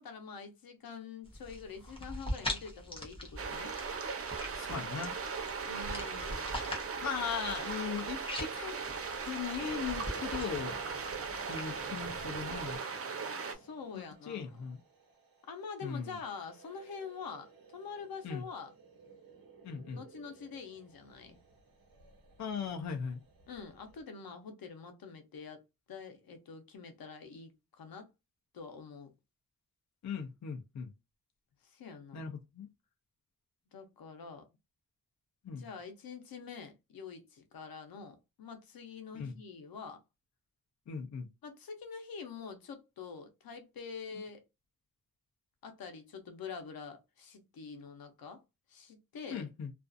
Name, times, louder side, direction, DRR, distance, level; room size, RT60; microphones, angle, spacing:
voice 1, 0.0-3.7 5.7-6.5 13.5-14.6 15.5-18.7 19.9-21.4 23.5-25.6 25.9-28.1 28.5-29.1 31.6-32.3 33.7-34.5 35.5-40.0 41.4-44.4 45.6-48.4 48.7-49.5, left 5 dB, 85° left, 0.7 m, -46 dB
sound 1, 1.2-12.7, left 1 dB, 15° left, 0.7 m, -43 dB
sound 2, 3.4-13.5, right 5 dB, 40° right, 0.5 m, -38 dB
voice 2, 4.5-5.2 7.0-8.8 9.2-10.8 11.4-12.8 13.9-14.8 15.8-16.2 18.2-18.4 19.6-20.0 22.4-23.2 30.0-30.9 32.1-32.7 35.4-35.7 39.1-39.4 40.9-41.3 49.3-49.7, left 6 dB, 55° left, 0.5 m, -38 dB
sound 3, 9.6-24.0, right 4 dB, 80° right, 0.9 m, -53 dB
2.4 x 2.3 x 2.4 m
wide cardioid pair, 175°, 35 cm